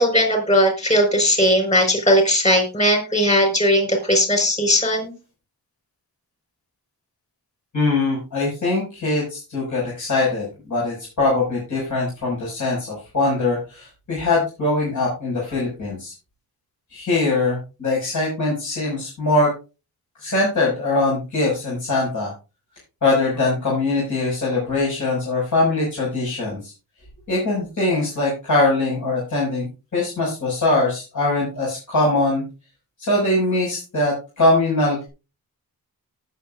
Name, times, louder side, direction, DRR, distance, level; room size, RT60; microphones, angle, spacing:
voice 1, 0.0-5.1, equal, 20° left, 4 dB, 5.1 m, -18 dB
voice 2, 7.7-16.1 16.9-19.5 20.2-22.3 23.0-26.7 27.3-32.4 33.0-35.1, left 2 dB, 55° left, -6 dB, 6.2 m, -22 dB
19.0 x 7.2 x 2.6 m, 0.31 s
wide cardioid pair, 125°, 36 cm